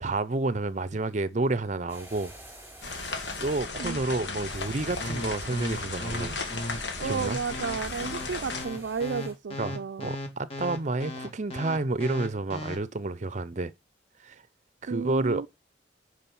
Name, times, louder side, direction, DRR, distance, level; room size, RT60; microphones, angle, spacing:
voice 1, 0.0-2.3 3.0-3.1 3.4-6.4 7.0-7.4 9.6-13.7 14.2-14.4 14.8-15.5, right 2 dB, 40° right, 0.7 m, -30 dB
sound 1, 1.9-9.3, right 1 dB, 10° right, 4.3 m, -49 dB
sound 2, 2.8-8.6, left 3 dB, 75° left, 1.8 m, -35 dB
sound 3, 5.0-12.8, left 1 dB, 35° left, 2.1 m, -36 dB
voice 2, 7.0-10.1 14.9-15.5, right 5 dB, 80° right, 0.4 m, -32 dB
10.0 x 5.0 x 5.4 m
head